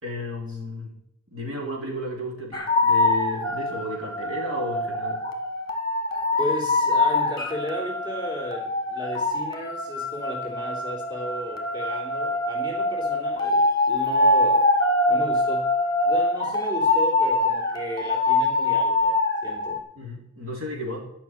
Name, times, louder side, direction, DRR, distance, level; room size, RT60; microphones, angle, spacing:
voice 1, 0.0-0.9 1.3-5.2 19.9-21.0, left 1 dB, 75° right, -1 dB, 3.2 m, -33 dB
sound 1, 2.5-19.8, left 2 dB, 20° left, 1.7 m, -24 dB
voice 2, 6.4-14.7 15.1-15.7 16.0-19.8, equal, 20° right, -3 dB, 3.1 m, -34 dB
12.0 x 5.8 x 9.1 m, 0.78 s
head